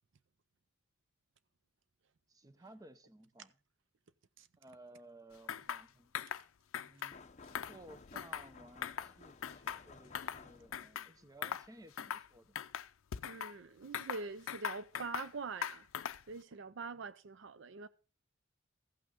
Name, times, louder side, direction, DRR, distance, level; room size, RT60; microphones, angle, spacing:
voice 1, 2.3-3.5 4.6-6.1 6.8-7.2 7.7-12.6, right 1 dB, 15° right, 0.7 m, -57 dB
sound 1, 5.5-5.8 6.1-6.4 6.7-7.2 7.5-8.5 8.8-9.1 9.4-10.4 10.7-11.1 11.4-11.7 12.0-12.3 12.6-13.5 13.9-15.3 15.6-16.3, left 8 dB, 80° left, 0.5 m, -40 dB
sound 2, 7.1-11.0, left 4 dB, 35° left, 0.7 m, -56 dB
voice 2, 13.2-17.9, right 4 dB, 60° right, 0.5 m, -44 dB
15.0 x 6.0 x 5.0 m
head